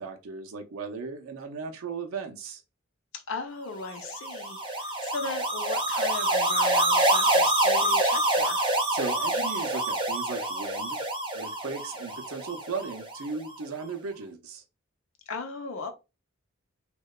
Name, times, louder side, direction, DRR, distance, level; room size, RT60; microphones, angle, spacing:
voice 1, 0.0-2.6 8.8-11.0 11.3-14.6, right 5 dB, 85° right, 0.5 m, -36 dB
voice 2, 3.1-8.7 15.3-15.9, left 4 dB, 70° left, 0.5 m, -37 dB
sound 1, 3.9-13.2, right 1 dB, 25° right, 0.5 m, -26 dB
2.8 x 2.1 x 2.2 m
head